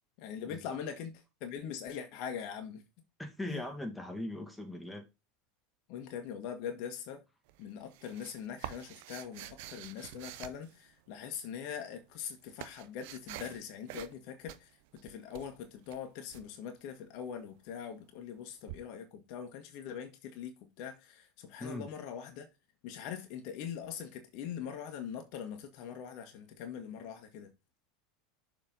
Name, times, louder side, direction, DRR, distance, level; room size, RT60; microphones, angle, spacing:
voice 1, 0.2-2.8 3.5-3.6 5.9-7.2 7.6-14.7 15.0-22.5 22.8-27.5, left 8 dB, 55° left, 1.7 m, -42 dB
voice 2, 3.2-5.1 21.6-21.9, left 1 dB, 5° left, 2.2 m, -40 dB
sound 1, 7.5-11.3 12.0-13.6 13.9-14.2 14.5-16.4 18.7-18.8, right 14 dB, 65° right, 0.7 m, -47 dB
6.8 x 4.8 x 4.0 m
hypercardioid pair, 90°, 0 cm